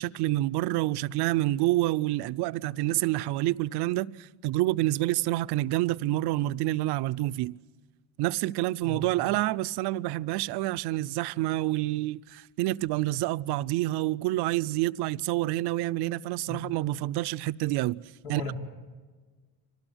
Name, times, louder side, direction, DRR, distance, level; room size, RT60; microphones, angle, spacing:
voice 1, 0.0-7.6 8.2-18.0 18.3-18.4, right 17 dB, 75° right, 0.6 m, -28 dB
voice 2, 18.2-18.5, left 1 dB, 80° left, 4.5 m, -36 dB
25.5 x 18.5 x 8.0 m
cardioid pair, 160°, 39 cm